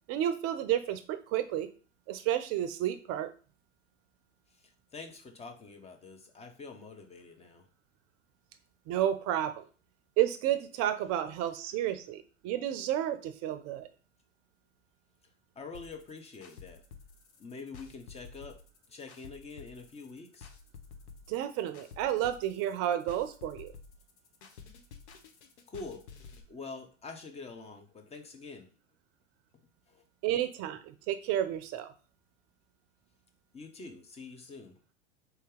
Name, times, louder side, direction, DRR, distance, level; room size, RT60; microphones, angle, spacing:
voice 1, 0.1-1.7 2.1-3.3 8.9-9.7 10.2-13.9 21.3-23.7 30.2-31.9, right 11 dB, 40° right, 11 dB, 0.6 m, -31 dB
voice 2, 4.5-7.6 15.6-16.8 17.4-18.6 18.9-20.5 25.7-26.1 26.5-28.7 29.9-30.0 33.5-34.8, left 4 dB, 15° left, 5 dB, 0.7 m, -46 dB
sound 1, 15.7-26.4, left 5 dB, 65° left, 0.9 m, -51 dB
3.4 x 2.8 x 3.6 m, 0.38 s
hypercardioid pair, 90°, 37 cm